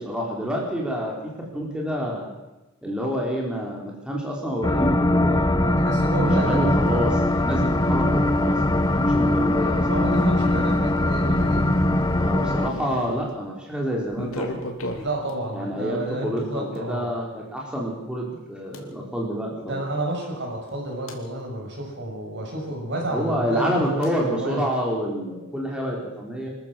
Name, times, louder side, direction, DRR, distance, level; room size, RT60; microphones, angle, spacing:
voice 1, 0.0-2.4 2.8-5.7 6.2-9.9 12.2-14.6 15.5-19.8 23.1-26.5, equal, 5° right, -2 dB, 4.2 m, -28 dB
sound 1, 4.6-12.7, left 1 dB, 20° left, 1.1 m, -21 dB
voice 2, 5.5-6.7 9.9-11.8 15.0-17.1 19.6-24.7, right 1 dB, 55° right, 1 dB, 6.8 m, -30 dB
sound 2, 6.2-13.3 14.1-15.3 16.7-16.8 18.7-18.8 20.7-21.2 24.0-24.1, left 1 dB, 70° left, 3.1 m, -36 dB
25.5 x 14.0 x 7.6 m, 1.0 s
head